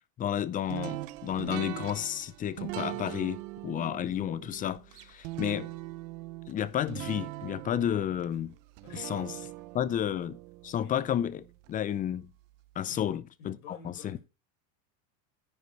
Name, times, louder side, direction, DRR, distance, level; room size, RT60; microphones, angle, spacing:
voice 1, 0.2-5.7 6.5-8.5 8.9-9.4 9.7-10.4 10.6-12.3 12.8-14.2, left 10 dB, 20° left, 0.3 m, -32 dB
sound 1, 0.7-11.7, right 18 dB, 65° right, 0.8 m, -41 dB
voice 2, 8.8-9.5 10.8-11.0 12.8-13.0 13.4-14.2, left 4 dB, 85° left, 4.5 m, -51 dB
9.4 x 5.2 x 4.5 m
supercardioid pair, 125°, 43 cm